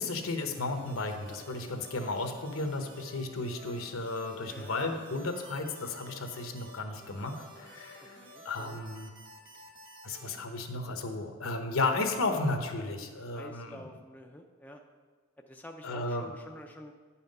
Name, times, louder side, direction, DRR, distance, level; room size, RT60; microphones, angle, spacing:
voice 1, 0.0-8.2 8.4-9.1 10.0-13.8 15.8-16.3, left 3 dB, 75° left, 5 dB, 1.0 m, -34 dB
sound 1, 0.6-10.4, equal, 40° right, 1.4 m, -52 dB
voice 2, 8.0-8.8 13.3-14.8 15.5-16.9, equal, 5° left, 2 dB, 0.4 m, -48 dB
9.8 x 5.7 x 5.3 m, 1.5 s
head